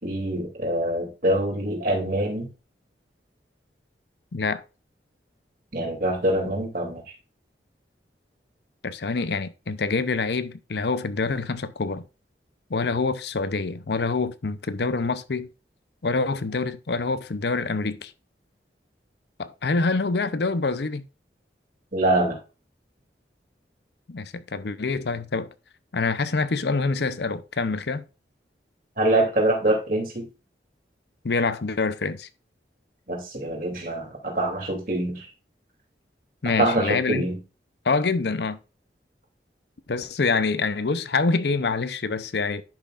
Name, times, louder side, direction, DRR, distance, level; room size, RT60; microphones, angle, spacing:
voice 1, 0.0-2.5 5.7-7.0 21.9-22.4 29.0-30.3 33.1-35.2 36.6-37.4, right 1 dB, 50° right, 3.0 m, -24 dB
voice 2, 4.3-4.6 8.8-12.0 12.7-15.5 16.0-18.1 19.4-21.0 24.1-25.5 25.9-28.0 31.2-32.3 36.4-37.3 37.8-38.6 39.9-42.6, left 4 dB, 70° left, 0.6 m, -26 dB
10.5 x 5.8 x 2.5 m
head